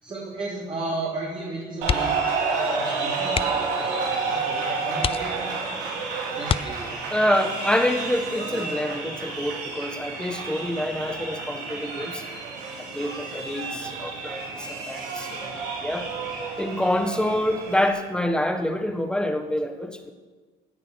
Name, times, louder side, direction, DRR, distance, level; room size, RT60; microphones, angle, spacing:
voice 1, 0.0-2.2 2.7-7.0 13.7-13.9, right 2 dB, 30° right, -5 dB, 3.5 m, -35 dB
sound 1, 1.8-2.3 2.6-2.8 3.3-3.8 4.4-4.5 5.0-5.7 6.4-7.2 8.8-9.1 9.5-9.6, left 8 dB, 35° left, 0.5 m, -29 dB
sound 2, 1.8-17.9, right 4 dB, 90° right, 4.1 m, -30 dB
voice 2, 7.1-12.2 12.8-16.1 16.6-20.1, left 1 dB, 5° left, 6 dB, 1.4 m, -26 dB
16.0 x 9.8 x 6.4 m, 1.4 s
cardioid pair, 110°, 17 cm